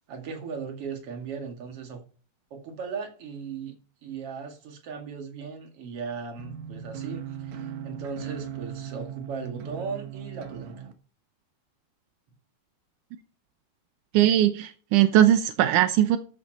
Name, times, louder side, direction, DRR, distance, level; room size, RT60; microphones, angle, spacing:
voice 1, 0.1-2.0 2.5-10.9, right 5 dB, 45° right, 2.6 m, -37 dB
sound 1, 6.4-10.9, right 9 dB, 65° right, 1.9 m, -38 dB
voice 2, 14.1-16.2, right 12 dB, 80° right, 1.8 m, -20 dB
13.5 x 6.3 x 4.2 m
omnidirectional pair, 4.5 m